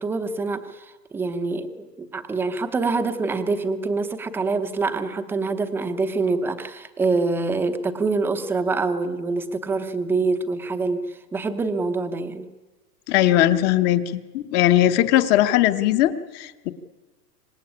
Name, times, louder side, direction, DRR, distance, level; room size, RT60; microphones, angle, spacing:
voice 1, 0.0-12.5, right 3 dB, 5° right, 9 dB, 0.8 m, -25 dB
voice 2, 13.1-16.7, left 13 dB, 20° left, 12 dB, 0.9 m, -19 dB
25.5 x 19.5 x 9.9 m, 1.3 s
hypercardioid pair, 155°, 49 cm